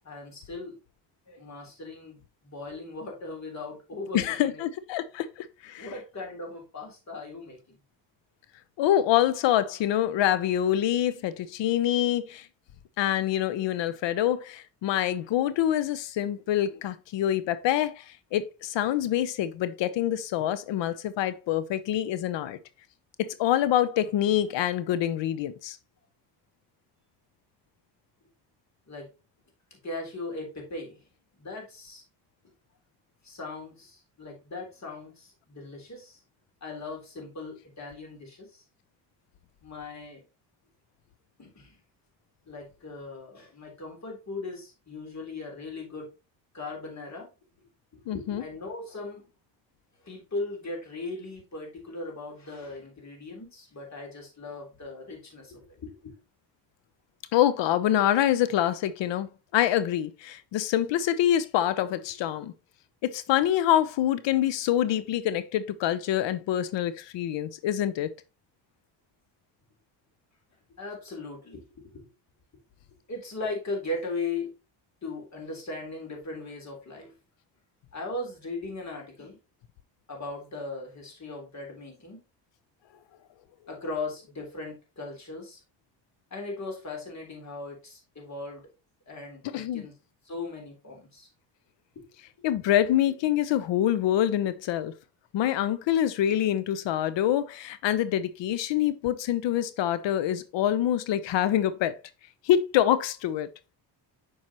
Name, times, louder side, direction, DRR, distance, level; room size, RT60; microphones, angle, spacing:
voice 1, 0.0-0.7 1.3-4.6 5.8-7.6 28.9-29.1 29.8-31.0 31.4-32.0 33.2-36.2 36.6-38.6 39.6-40.2 41.4-41.8 42.5-46.1 46.5-47.3 47.9-49.3 50.0-56.1 70.8-72.1 73.1-74.5 75.0-77.1 77.9-79.4 80.1-82.2 83.7-85.6 86.3-88.7 89.1-89.9 90.2-91.3 91.9-92.1, left 3 dB, 35° left, 3.4 m, -38 dB
voice 2, 4.1-5.3 5.6-5.9 8.8-12.5 13.0-18.0 18.3-22.6 23.2-25.8 48.1-48.4 57.3-59.3 59.5-62.5 63.0-68.1 89.5-89.9 92.4-94.9 95.3-101.9 102.4-103.5, left 11 dB, 65° left, 0.8 m, -26 dB
7.4 x 4.6 x 2.9 m
supercardioid pair, 75°, 47 cm